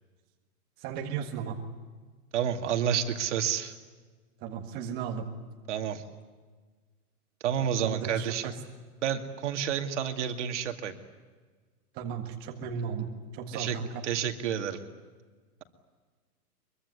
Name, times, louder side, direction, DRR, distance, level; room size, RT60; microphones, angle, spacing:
voice 1, 0.8-1.6 4.4-5.3 7.8-8.5 11.9-14.0, right 6 dB, 20° right, 1 dB, 1.7 m, -35 dB
voice 2, 2.3-3.7 5.7-6.0 7.4-8.5 9.0-11.0 13.5-13.8 14.0-14.8, right 8 dB, 50° right, 6 dB, 2.4 m, -29 dB
24.5 x 23.5 x 9.8 m, 1.4 s
hypercardioid pair, 165°, 47 cm